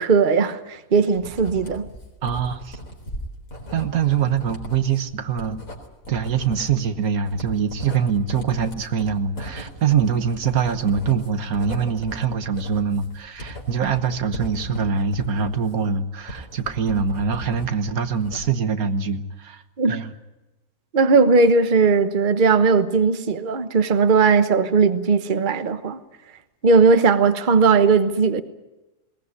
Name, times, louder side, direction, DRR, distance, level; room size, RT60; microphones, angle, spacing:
voice 1, 0.0-1.9 19.8-20.0 20.9-26.0 26.6-28.4, right 4 dB, 35° right, 1.2 m, -18 dB
Writing, 1.2-17.7 18.0-18.7, equal, 65° left, 4.3 m, -38 dB
voice 2, 2.2-2.8 3.7-5.6 6.1-19.6 19.9-20.1, right 6 dB, 80° right, 1.7 m, -23 dB
20.5 x 18.5 x 9.6 m
omnidirectional pair, 1.5 m